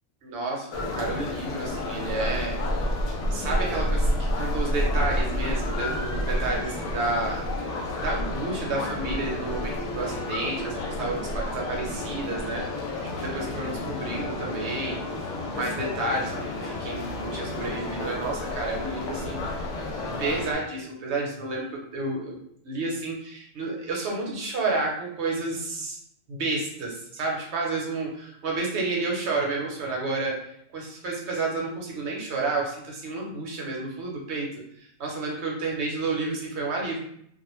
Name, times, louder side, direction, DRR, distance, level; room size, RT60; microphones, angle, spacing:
voice 1, 0.2-2.6 3.3-7.4 8.0-12.7 13.2-15.0 15.5-19.5 20.2-22.4 22.6-26.0 26.3-30.5 30.7-37.0, right 3 dB, 60° right, -1 dB, 0.9 m, -30 dB
sound 1, 0.7-20.5, left 1 dB, 70° left, 0.9 m, -30 dB
2.3 x 2.1 x 3.0 m, 0.70 s
omnidirectional pair, 1.4 m